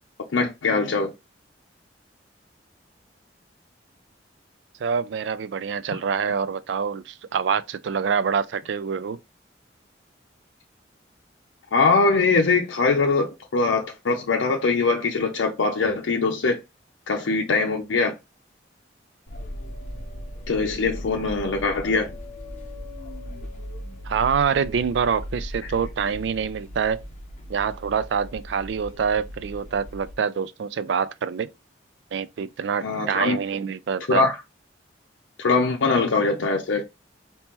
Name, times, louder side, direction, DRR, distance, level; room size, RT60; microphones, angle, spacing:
voice 1, 0.3-1.1 11.7-16.6 17.1-18.1 20.5-22.1 25.6-25.7 32.8-33.4 34.1-34.4 35.4-36.8, left 4 dB, 85° left, 0.6 m, -22 dB
voice 2, 4.8-9.2 24.1-27.0 27.5-31.5 32.1-34.2, right 6 dB, 70° right, 0.3 m, -26 dB
sound 1, 19.3-30.1, equal, 40° left, 0.7 m, -38 dB
3.6 x 2.8 x 2.8 m
head